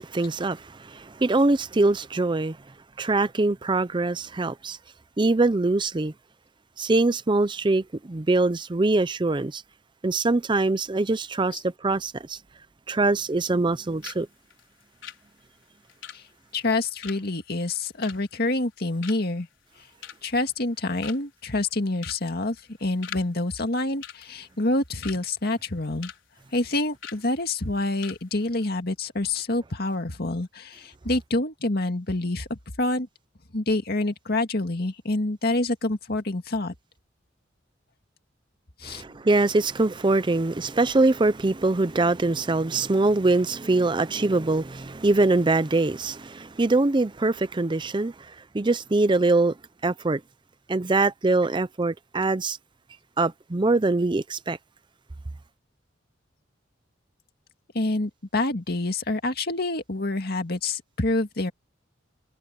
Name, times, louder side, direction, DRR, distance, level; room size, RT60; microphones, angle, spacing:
voice 1, 0.0-2.6 3.0-4.8 5.2-6.1 6.8-9.6 10.0-12.4 12.9-14.3 38.9-49.5 49.8-50.2 50.7-52.6 53.2-54.6, right 2 dB, 25° right, 0.5 m, -23 dB
sound 1, 13.2-13.8 14.0-14.2 14.5-18.7 19.0-19.4 19.8-20.4 20.7-20.8 21.0-21.4 22.0-22.2 22.5-23.3 23.5-23.7 24.0-25.2 25.6-26.2 26.5-26.6 27.0-27.2 27.6-27.7 28.0-28.2 28.5-28.6, left 9 dB, 85° left, 4.6 m, -42 dB
voice 2, 16.5-19.5 20.2-22.6 22.8-26.1 26.5-33.1 33.5-36.7 38.8-39.0 57.7-61.5, left 2 dB, 55° left, 2.1 m, -27 dB
head